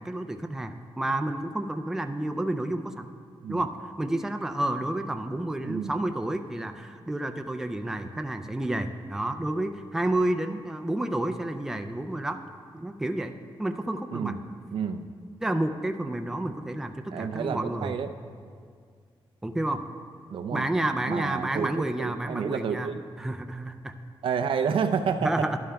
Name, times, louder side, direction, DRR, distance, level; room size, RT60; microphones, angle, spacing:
voice 1, 0.0-3.1 3.5-3.7 4.0-12.4 12.7-13.3 13.6-14.3 15.4-18.0 19.4-19.8 20.5-22.9 23.2-23.9 25.2-25.6, right 1 dB, 5° right, 7 dB, 0.3 m, -30 dB
voice 2, 14.1-14.4 14.7-15.0 17.1-18.1 20.3-20.7 21.1-21.7 22.0-23.0 24.2-25.6, right 6 dB, 70° right, 8 dB, 0.4 m, -29 dB
12.5 x 11.0 x 2.2 m, 2.1 s
wide cardioid pair, 145°, 9 cm